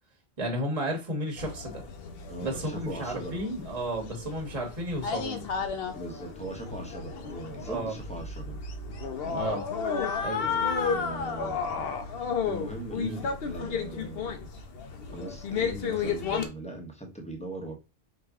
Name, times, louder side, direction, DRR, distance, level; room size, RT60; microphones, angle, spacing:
voice 1, 0.4-1.8 2.4-5.5 7.7-8.0 9.3-9.6 10.2-10.5 13.0-13.3, right 1 dB, 35° right, 1 dB, 1.1 m, -33 dB
sound 1, 1.4-16.5, left 5 dB, 70° left, 0.9 m, -33 dB
voice 2, 2.3-3.4 5.9-8.6 9.2-9.4 10.4-12.0 12.4-14.5 15.1-17.8, right 1 dB, 5° left, 1 dB, 1.0 m, -40 dB
4.9 x 2.6 x 3.5 m, 0.27 s
omnidirectional pair, 1.0 m